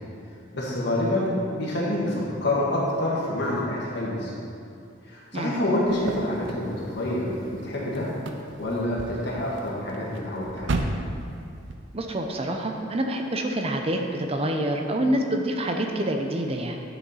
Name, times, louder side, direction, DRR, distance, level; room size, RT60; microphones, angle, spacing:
voice 1, 0.5-4.3 5.1-8.1 8.6-10.9, left 1 dB, 60° left, -6 dB, 1.6 m, -27 dB
sound 1, 5.9-11.8, right 2 dB, 75° right, 0.6 m, -35 dB
voice 2, 11.9-16.8, right 1 dB, 30° right, 3 dB, 0.7 m, -27 dB
10.0 x 6.1 x 4.2 m, 2.4 s
head